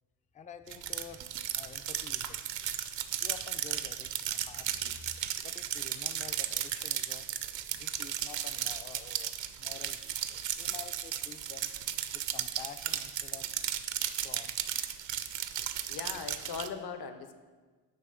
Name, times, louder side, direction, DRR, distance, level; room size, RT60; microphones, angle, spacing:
voice 1, 0.3-2.6 3.2-5.1 5.4-7.3 7.7-11.7 12.1-13.5 14.2-14.6, left 6 dB, 15° left, 10 dB, 0.3 m, -49 dB
sound 1, 0.7-16.7, right 10 dB, 65° right, 0.6 m, -35 dB
voice 2, 15.9-17.4, left 6 dB, 50° left, 8 dB, 0.8 m, -39 dB
9.1 x 3.1 x 5.5 m, 1.4 s
supercardioid pair, 45°, 49 cm